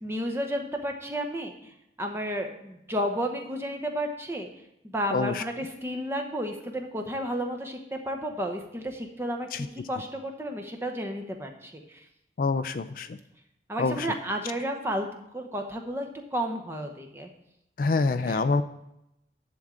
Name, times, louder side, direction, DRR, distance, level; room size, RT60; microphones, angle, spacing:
voice 1, 0.0-1.7 2.0-4.5 4.8-12.0 13.7-15.1 15.3-17.3 18.2-18.4, equal, 15° right, 4 dB, 0.9 m, -32 dB
voice 2, 5.1-5.4 9.5-9.7 12.4-13.2 13.8-14.1 17.8-18.6, left 3 dB, 50° left, 11 dB, 0.3 m, -26 dB
10.5 x 3.8 x 7.4 m, 0.84 s
head